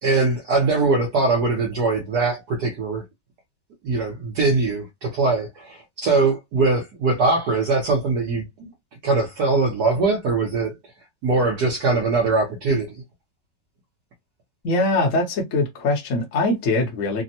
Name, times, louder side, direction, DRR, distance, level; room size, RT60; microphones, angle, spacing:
voice 1, 0.0-3.0 3.8-8.7 9.0-10.8 11.2-13.0, right 3 dB, 65° right, 1.3 m, -21 dB
voice 2, 14.6-17.2, left 2 dB, 55° left, 1.0 m, -22 dB
3.4 x 2.1 x 2.7 m
omnidirectional pair, 2.0 m